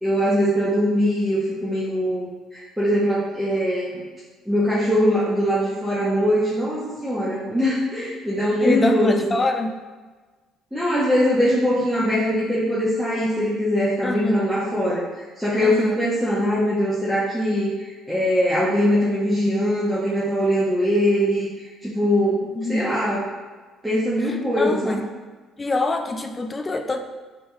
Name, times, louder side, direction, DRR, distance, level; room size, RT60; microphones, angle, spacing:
voice 1, 0.0-4.1 4.5-9.3 10.7-22.4 22.7-23.3 23.8-25.0, equal, 5° right, -9 dB, 0.8 m, -22 dB
voice 2, 8.6-9.8 14.0-14.5 15.6-16.0 22.6-23.0 24.6-25.1 25.6-27.0, left 2 dB, 25° left, 6 dB, 0.3 m, -24 dB
3.4 x 2.8 x 2.3 m, 1.3 s
supercardioid pair, 70°, 0 cm